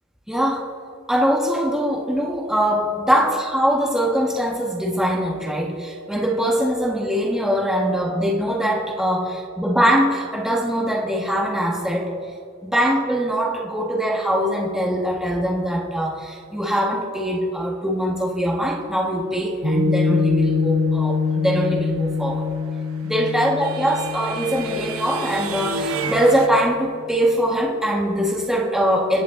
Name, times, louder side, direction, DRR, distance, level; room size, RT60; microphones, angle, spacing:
voice 1, 0.3-0.7 1.1-12.1 12.6-22.4 23.0-29.2, equal, ahead, -2 dB, 1.4 m, -22 dB
Piano, 19.6-26.3, left 4 dB, 50° right, 3.0 m, -24 dB
sound 1, 22.6-26.5, right 4 dB, 70° right, 1.0 m, -31 dB
27.0 x 10.0 x 3.8 m, 2.3 s
head